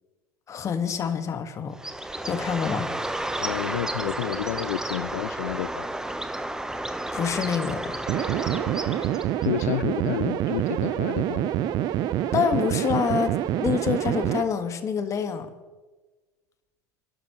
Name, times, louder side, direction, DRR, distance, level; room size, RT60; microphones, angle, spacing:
voice 1, 0.5-1.8 2.3-2.9 7.1-8.0 12.3-13.3 13.6-15.5, left 7 dB, 35° left, 8 dB, 1.6 m, -26 dB
Bird, 1.7-9.5, right 1 dB, 5° right, 1.0 m, -32 dB
voice 2, 3.4-5.9 9.4-11.6, left 14 dB, 75° left, 15 dB, 0.4 m, -30 dB
sound 1, 8.1-14.4, right 12 dB, 50° right, 0.7 m, -26 dB
29.5 x 12.0 x 3.1 m, 1.3 s
hypercardioid pair, 80°, 9 cm